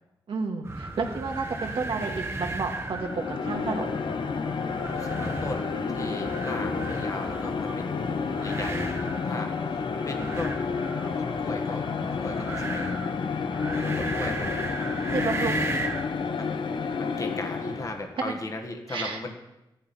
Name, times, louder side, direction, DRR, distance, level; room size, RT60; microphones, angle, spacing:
voice 1, 0.3-4.0 10.2-10.3 15.1-15.6 18.9-19.3, right 4 dB, 85° right, 2 dB, 1.9 m, -31 dB
sound 1, 0.6-16.1, right 2 dB, 30° right, 1.2 m, -36 dB
sound 2, 2.8-18.1, left 5 dB, 70° left, 0.8 m, -30 dB
voice 2, 5.0-7.9 8.4-10.7 11.2-14.6 16.3-19.3, left 2 dB, 40° left, 3 dB, 1.5 m, -37 dB
15.0 x 11.0 x 4.3 m, 0.98 s
wide cardioid pair, 105°, 9 cm